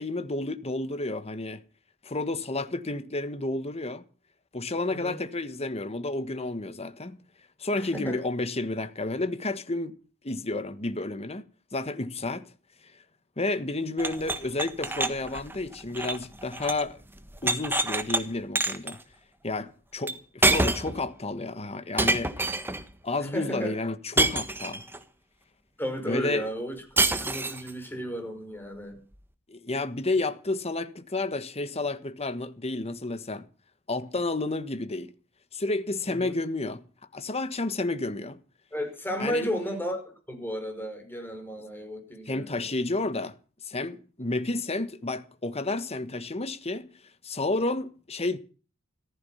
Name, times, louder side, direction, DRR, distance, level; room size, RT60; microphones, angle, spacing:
voice 1, 0.0-1.6 2.0-4.0 4.5-7.2 7.6-10.0 10.2-11.4 11.7-12.5 13.4-17.0 17.4-19.0 19.4-22.5 23.0-24.8 26.0-26.5 29.5-33.5 33.9-35.1 35.5-36.8 37.1-38.4 39.2-39.5 42.3-43.3 43.6-46.9 47.2-48.4, left 2 dB, 30° left, 1.5 m, -31 dB
voice 2, 7.7-8.2 23.2-23.8 25.8-26.8 27.2-29.0 36.1-36.3 38.7-42.7 44.3-44.4, equal, 10° left, 5.5 m, -34 dB
sound 1, 14.0-16.9 17.2-18.2 18.6-18.9 20.1-20.2 20.4-21.0 22.0-22.8 24.2-25.0 27.0-27.7, right 2 dB, 10° right, 1.5 m, -26 dB
15.0 x 15.0 x 5.7 m
head